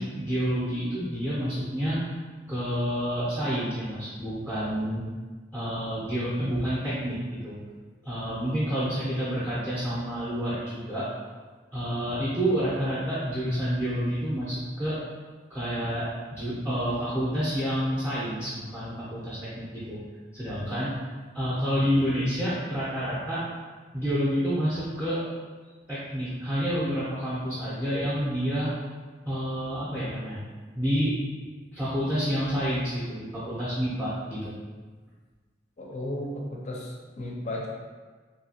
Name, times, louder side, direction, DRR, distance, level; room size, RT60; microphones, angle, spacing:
voice 1, 0.0-2.0 2.5-5.1 5.5-7.6 8.0-11.1 11.7-15.0 15.5-20.0 20.3-21.0 21.3-23.4 23.9-25.2 25.9-28.7 29.2-30.4 30.7-31.1 31.7-34.5, equal, 10° right, -10 dB, 0.5 m, -29 dB
voice 2, 35.8-37.7, left 1 dB, 40° left, -2 dB, 0.5 m, -34 dB
2.8 x 2.7 x 2.8 m, 1.4 s
head